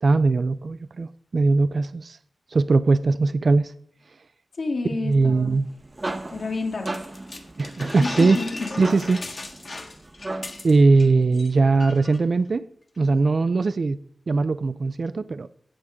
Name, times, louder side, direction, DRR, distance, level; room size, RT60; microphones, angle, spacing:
voice 1, 0.0-2.2 2.5-3.7 5.0-5.7 7.6-8.4 8.8-9.2 10.6-12.6 13.0-14.0 14.3-15.5, right 3 dB, 55° right, 0.5 m, -20 dB
voice 2, 4.6-5.6 6.3-6.9 8.0-8.9, left 3 dB, 70° left, 2.4 m, -29 dB
sound 1, 5.5-10.8, right 2 dB, 25° right, 0.8 m, -36 dB
sound 2, 6.9-11.1 11.3-11.5 11.8-12.2, left 2 dB, 45° left, 1.4 m, -36 dB
16.5 x 6.6 x 3.6 m
wide cardioid pair, 105°, 0 cm